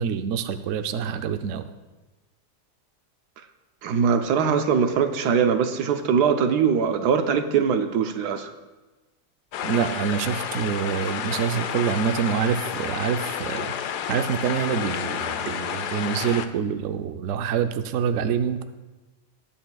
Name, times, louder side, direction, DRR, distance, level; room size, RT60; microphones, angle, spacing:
voice 1, 0.0-1.7 9.6-13.7 14.1-18.6, right 7 dB, 65° right, 8 dB, 0.8 m, -26 dB
voice 2, 3.8-8.5, right 6 dB, 80° right, 7 dB, 1.3 m, -22 dB
sound 1, 9.5-16.5, left 9 dB, 90° left, 1.2 m, -30 dB
20.0 x 8.9 x 2.3 m, 1.2 s
omnidirectional pair, 1.7 m